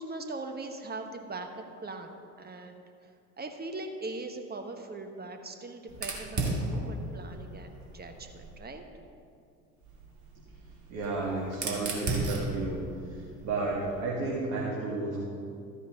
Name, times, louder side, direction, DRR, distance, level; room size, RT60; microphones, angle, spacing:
voice 1, 0.0-8.8, right 2 dB, 20° right, 5 dB, 1.2 m, -41 dB
Fire, 5.9-8.6 9.8-14.0, right 2 dB, 35° right, 2.1 m, -36 dB
voice 2, 10.9-12.8 13.1-15.2, right 3 dB, 60° right, -4 dB, 2.0 m, -32 dB
13.5 x 9.7 x 3.7 m, 2.4 s
figure-of-eight pair, 60°, 47 cm